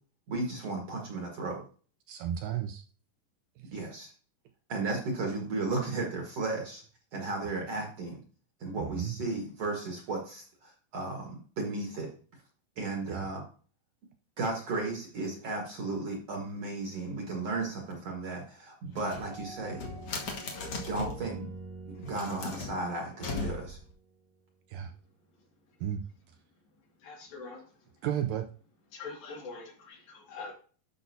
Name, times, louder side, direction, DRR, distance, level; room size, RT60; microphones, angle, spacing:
voice 1, 0.3-1.6 3.7-4.1 4.7-6.8 7.1-8.2 8.6-12.1 12.8-13.4 14.4-19.8 20.7-21.5 22.0-23.8, right 3 dB, 55° right, 1 dB, 2.0 m, -34 dB
voice 2, 2.1-2.8 3.6-3.7 8.8-9.2 13.1-13.3 24.7-24.9 25.8-26.0 28.0-28.5, right 10 dB, 80° right, 6 dB, 2.0 m, -33 dB
sound 1, 18.9-21.3 22.0-23.9, left 3 dB, 55° left, 1.8 m, -38 dB
sound 2, 19.2-24.3, right 3 dB, 10° right, 1.5 m, -47 dB
voice 3, 25.4-25.8 26.8-28.1 28.9-30.5, left 4 dB, 75° left, -2 dB, 4.0 m, -45 dB
12.5 x 5.5 x 2.7 m, 0.40 s
omnidirectional pair, 4.2 m